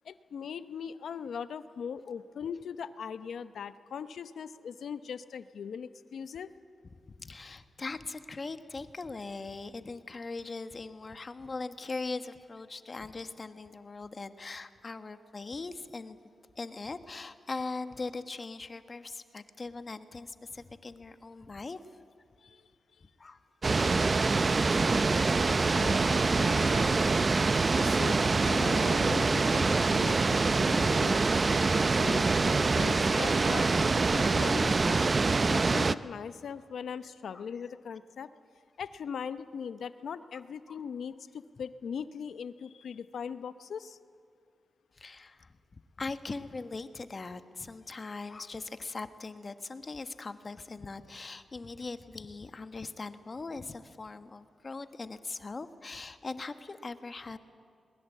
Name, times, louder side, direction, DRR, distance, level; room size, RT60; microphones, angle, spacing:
voice 1, 0.0-6.5 22.4-22.6 25.7-26.9 27.7-31.2 31.7-35.1 35.5-38.3 38.8-44.0, left 7 dB, 80° left, 13 dB, 0.8 m, -40 dB
voice 2, 7.1-16.2 16.5-21.8 23.2-23.4 37.3-37.4 40.3-40.4 40.7-40.8 44.9-57.4, left 3 dB, 45° left, 10 dB, 1.3 m, -40 dB
sound 1, 23.6-36.0, right 3 dB, 45° right, 0.6 m, -25 dB
22.0 x 20.5 x 8.4 m, 2.4 s
cardioid pair, 50°, 0 cm